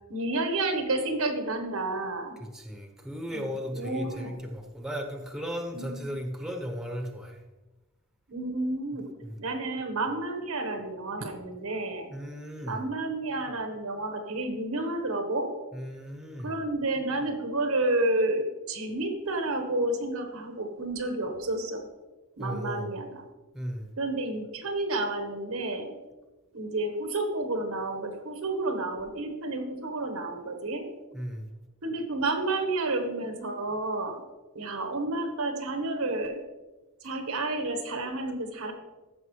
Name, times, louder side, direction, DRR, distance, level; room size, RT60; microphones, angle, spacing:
voice 1, 0.1-2.4 3.3-4.4 5.7-6.1 8.3-9.1 9.4-12.1 12.6-15.5 16.4-21.8 22.4-23.2 24.0-25.9 26.5-30.9 31.8-34.2 34.5-36.4 37.0-38.7, right 2 dB, 85° right, 5 dB, 1.4 m, -30 dB
voice 2, 2.4-7.4 9.2-9.4 12.1-12.8 15.7-16.5 22.4-22.9 23.5-23.9 31.1-31.5, equal, 5° right, 3 dB, 0.9 m, -36 dB
14.0 x 5.9 x 3.2 m, 1.1 s
head